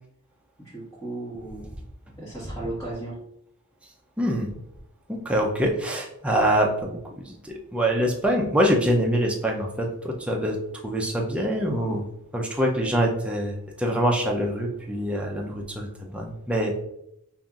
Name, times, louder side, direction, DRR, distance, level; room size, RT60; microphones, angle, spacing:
voice 1, 0.6-1.7 2.2-3.1, right 2 dB, 15° left, -11 dB, 1.2 m, -35 dB
voice 2, 4.2-4.5 5.1-10.6 10.8-12.0 12.3-16.8, equal, 5° right, -1 dB, 0.5 m, -25 dB
5.4 x 2.5 x 2.3 m, 0.79 s
head